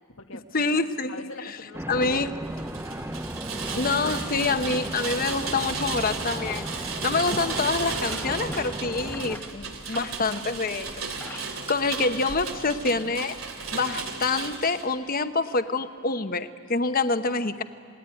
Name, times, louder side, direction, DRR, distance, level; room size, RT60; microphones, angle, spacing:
voice 1, 0.0-0.4 1.1-2.1 5.6-6.0 11.5-12.3, left 3 dB, 80° left, 5 dB, 1.5 m, -45 dB
voice 2, 0.5-1.3 1.9-2.3 3.7-13.4 13.7-17.6, left 3 dB, 45° left, 9 dB, 1.1 m, -27 dB
sound 1, 1.7-9.4, right 1 dB, 10° right, 0.8 m, -35 dB
Rain, 2.5-14.9, right 4 dB, 80° right, 3.0 m, -34 dB
sound 2, 7.9-10.6 11.0-12.6, left 1 dB, 10° left, 1.2 m, -45 dB
28.0 x 19.5 x 9.9 m, 2.2 s
head